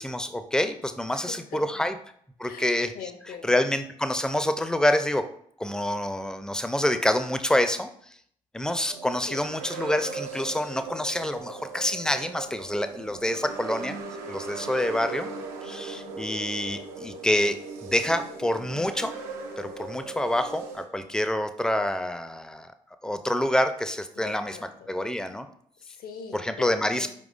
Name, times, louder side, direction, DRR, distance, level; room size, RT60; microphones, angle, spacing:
voice 1, 0.0-1.9 2.4-2.9 3.4-5.2 5.6-7.9 8.5-14.0 14.3-15.3 15.6-17.6 17.8-19.1 19.6-22.7 23.0-24.6 24.9-25.5 26.3-27.1, left 1 dB, 5° left, 9 dB, 0.4 m, -27 dB
voice 2, 1.1-1.8 2.4-3.6 9.3-9.5 24.1-24.9 25.8-27.1, left 6 dB, 60° left, 7 dB, 0.6 m, -42 dB
sound 1, 8.9-20.8, right 4 dB, 75° right, 0.6 m, -39 dB
4.7 x 3.7 x 2.4 m, 0.64 s
hypercardioid pair, 40°, 17 cm